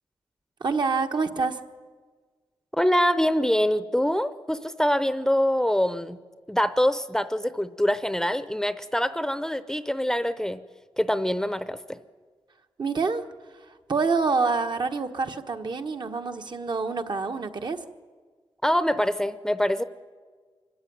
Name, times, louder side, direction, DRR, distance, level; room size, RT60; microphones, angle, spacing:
voice 1, 0.6-1.6 12.8-13.2 13.9-17.8, right 4 dB, 55° right, 5 dB, 1.3 m, -26 dB
voice 2, 2.7-6.2 6.5-10.6 11.0-12.0 18.6-19.8, equal, 5° left, 13 dB, 0.7 m, -24 dB
25.0 x 14.5 x 9.4 m, 1.5 s
wide cardioid pair, 95°, 9 cm